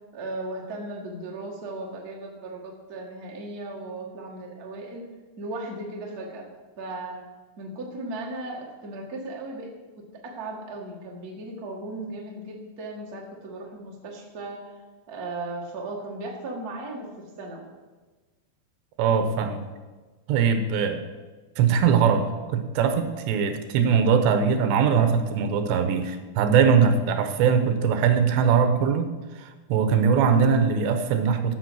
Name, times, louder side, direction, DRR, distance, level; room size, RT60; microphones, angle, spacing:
voice 1, 0.1-5.0 5.4-6.5 6.8-7.2 7.6-9.7 10.0-14.7 15.1-17.6, right 2 dB, 40° right, -1 dB, 1.4 m, -36 dB
voice 2, 19.0-19.6 20.3-21.0 21.6-29.1 29.4-31.6, right 6 dB, 85° right, 7 dB, 3.2 m, -21 dB
14.5 x 7.0 x 6.4 m, 1.3 s
omnidirectional pair, 4.9 m